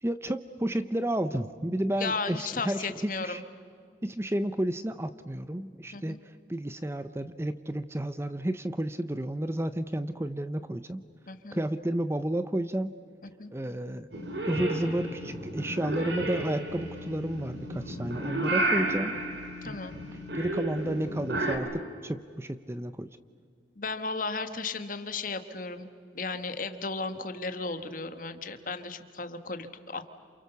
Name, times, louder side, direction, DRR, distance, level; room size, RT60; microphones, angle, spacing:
voice 1, 0.0-3.4 4.0-11.0 11.5-12.9 13.5-14.1 14.5-19.2 20.3-23.2, right 1 dB, 15° right, 12 dB, 0.6 m, -31 dB
voice 2, 2.0-3.4 5.9-6.2 11.3-11.6 13.4-13.5 19.6-19.9 23.7-25.9 26.1-30.1, left 4 dB, 45° left, 9 dB, 1.6 m, -35 dB
Purr / Meow, 14.1-21.6, right 2 dB, 75° right, 4.1 m, -32 dB
28.5 x 28.5 x 7.0 m, 2.2 s
head